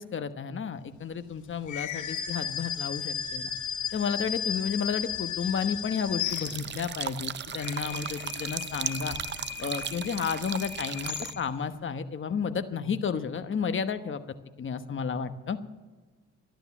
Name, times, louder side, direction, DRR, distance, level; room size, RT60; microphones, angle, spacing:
voice 1, 0.0-3.5 3.9-9.2 9.6-14.2 14.6-15.6, left 6 dB, 40° left, 9 dB, 1.2 m, -32 dB
sound 1, 1.7-6.9 7.4-11.6, left 8 dB, 75° left, 1.1 m, -35 dB
sound 2, 6.3-11.3, right 8 dB, 35° right, 0.6 m, -36 dB
12.5 x 12.0 x 7.2 m, 1.3 s
cardioid pair, 90°, 30 cm